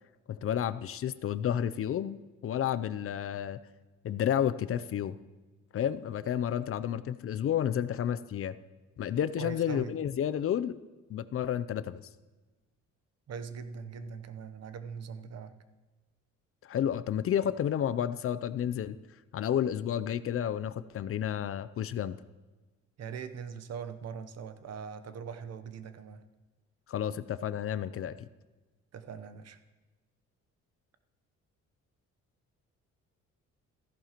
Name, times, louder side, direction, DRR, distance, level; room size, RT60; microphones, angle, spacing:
voice 1, 0.3-3.6 4.0-5.2 5.7-8.6 9.0-10.8 11.1-12.1 16.6-19.0 19.3-22.2 26.9-28.2, left 9 dB, 50° left, 15 dB, 0.5 m, -31 dB
voice 2, 9.4-9.9 13.3-15.5 23.0-26.2 28.9-29.6, right 6 dB, 55° right, 10 dB, 0.8 m, -41 dB
14.5 x 11.0 x 3.0 m, 1.2 s
cardioid pair, 90°, 30 cm